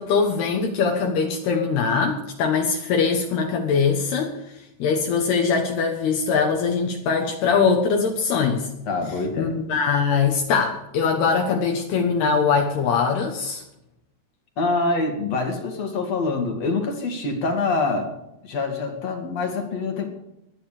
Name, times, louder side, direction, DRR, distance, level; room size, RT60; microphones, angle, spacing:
voice 1, 0.0-4.3 4.8-8.7 9.4-13.6, left 5 dB, 70° left, 2 dB, 3.2 m, -22 dB
voice 2, 8.9-9.5 14.6-18.1 18.4-20.1, left 3 dB, 45° left, 4 dB, 2.6 m, -25 dB
22.5 x 9.6 x 5.0 m, 0.87 s
omnidirectional pair, 5.0 m